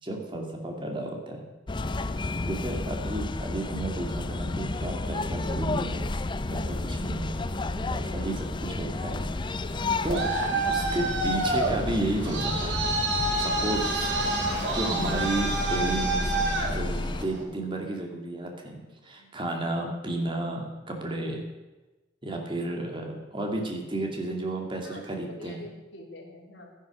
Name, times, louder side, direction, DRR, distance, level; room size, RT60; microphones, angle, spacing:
voice 1, 0.0-1.5 2.5-6.1 6.5-7.4 7.8-9.2 10.0-10.3 10.7-14.1 14.7-21.4 22.2-25.6, right 2 dB, 30° right, 2 dB, 2.3 m, -32 dB
sound 1, 1.7-17.2, left 2 dB, 25° left, 0.5 m, -31 dB
voice 2, 2.0-2.4 6.5-6.8 8.0-8.1 9.6-9.9 19.2-19.3 24.8-26.8, left 1 dB, 85° left, -1 dB, 3.3 m, -47 dB
Traffic noise roadway noise, 9.7-17.4, right 2 dB, 70° right, 2.5 m, -28 dB
12.5 x 10.5 x 6.1 m, 1.1 s
head